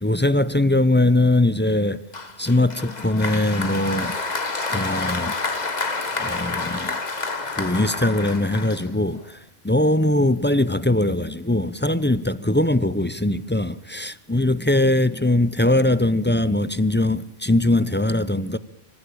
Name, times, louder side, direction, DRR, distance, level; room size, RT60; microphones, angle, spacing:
voice 1, 0.0-2.0 2.4-4.2 4.7-5.3 6.2-7.0 7.6-9.4 9.6-18.6, left 1 dB, 10° left, 0.6 m, -21 dB
Applause, 2.1-9.2, left 3 dB, 40° left, 1.6 m, -29 dB
26.0 x 14.0 x 8.9 m
omnidirectional pair, 1.1 m